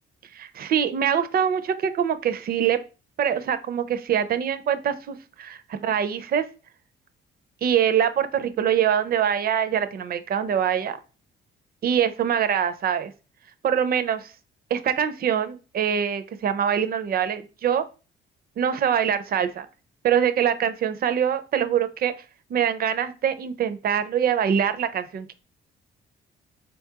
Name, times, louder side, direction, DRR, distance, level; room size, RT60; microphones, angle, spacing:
voice 1, 0.3-2.8 3.2-6.4 7.6-11.0 11.8-13.1 13.6-14.3 14.7-17.9 18.6-19.7 20.0-22.1 22.5-25.3, right 8 dB, 50° right, 11 dB, 0.4 m, -24 dB
4.2 x 2.3 x 2.7 m, 0.33 s
cardioid pair, 90°, 20 cm